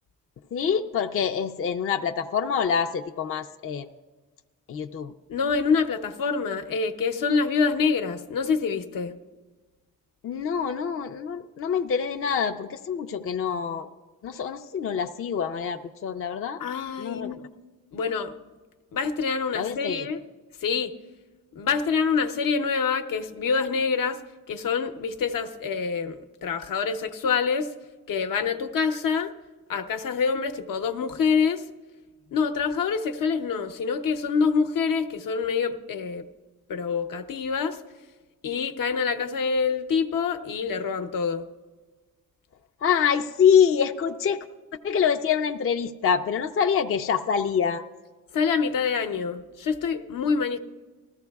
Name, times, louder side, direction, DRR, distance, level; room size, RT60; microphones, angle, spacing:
voice 1, 0.5-3.9 4.7-5.1 10.2-13.9 14.2-16.6 17.0-17.3 19.5-20.1 42.8-44.4 44.8-47.8, left 7 dB, 40° left, 5 dB, 0.5 m, -25 dB
voice 2, 5.3-9.1 16.6-17.4 17.9-18.3 18.9-20.2 20.6-20.9 21.5-24.2 24.5-27.7 28.1-29.3 29.7-31.6 32.3-36.2 36.7-37.8 38.4-41.4 48.3-50.6, left 5 dB, 70° left, 7 dB, 0.8 m, -26 dB
20.0 x 14.5 x 2.3 m, 1.3 s
wide cardioid pair, 145°, 33 cm